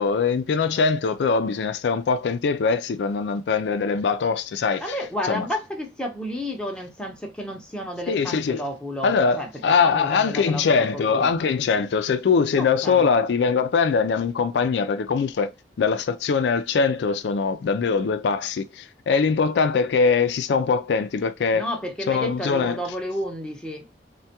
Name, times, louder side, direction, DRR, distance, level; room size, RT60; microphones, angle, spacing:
voice 1, 0.0-5.0 5.3-5.5 8.1-8.6 9.0-15.5 15.8-21.6 22.1-22.8, left 5 dB, 80° left, 0.4 m, -22 dB
voice 2, 4.8-9.5 9.8-11.3 12.6-13.1 21.5-23.9, left 1 dB, 5° left, 0.7 m, -31 dB
3.3 x 2.2 x 2.8 m
head